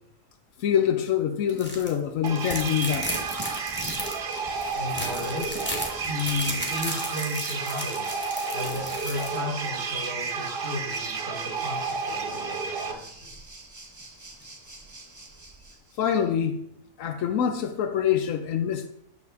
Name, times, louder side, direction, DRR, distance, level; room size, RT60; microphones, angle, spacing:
voice 1, 0.6-3.2 16.0-16.6 17.0-18.9, left 9 dB, 90° left, 1.1 m, -25 dB
sound 1, 1.5-1.9 2.3-9.4, equal, 10° left, 1.8 m, -35 dB
sound 2, 2.2-12.9, right 5 dB, 50° right, 0.9 m, -31 dB
Waves surf, 2.7-16.0, right 2 dB, 15° right, 0.9 m, -47 dB
voice 2, 4.7-5.7 6.0-8.1 8.5-13.3, left 3 dB, 50° left, 3.9 m, -34 dB
9.7 x 6.4 x 4.1 m
omnidirectional pair, 1.3 m